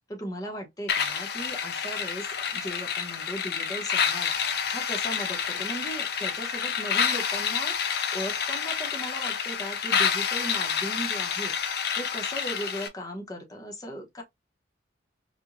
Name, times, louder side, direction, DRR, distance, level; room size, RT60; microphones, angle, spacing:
voice 1, 0.1-4.3 4.7-7.7 8.1-11.5 12.0-14.2, equal, 20° left, 0.8 m, -37 dB
sound 1, 0.9-12.9, left 7 dB, 60° left, 0.6 m, -28 dB
4.7 x 2.2 x 2.5 m
head